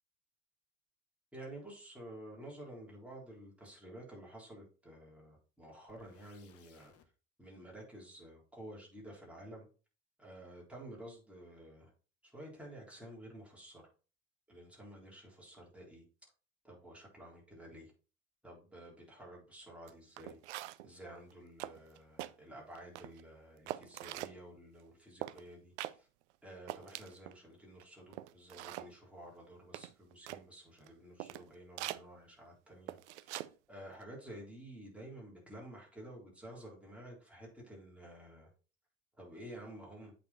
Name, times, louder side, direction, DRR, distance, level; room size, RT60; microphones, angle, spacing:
voice 1, 1.3-6.9 7.4-9.7 10.2-11.9 12.2-13.8 14.5-16.0 16.6-17.9 18.4-20.4 20.8-26.1 26.4-38.5 39.2-40.1, right 1 dB, 5° right, -3 dB, 3.8 m, -51 dB
sound 1, 5.9-7.1, left 8 dB, 40° left, 1.1 m, -65 dB
sound 2, 19.9-20.0 20.2-20.9 21.3-21.4 21.6-22.3 22.8-23.2 23.7-24.4 25.2-25.4 25.8-26.0 26.3-26.4 26.7-27.4 27.8-27.9 28.1-28.9 29.7-30.4 30.9-31.0 31.2-31.5 31.8-32.0 32.9-33.5 33.8-34.0, right 15 dB, 65° right, 0.5 m, -43 dB
8.3 x 4.4 x 4.3 m, 0.36 s
figure-of-eight pair, 70°, 38 cm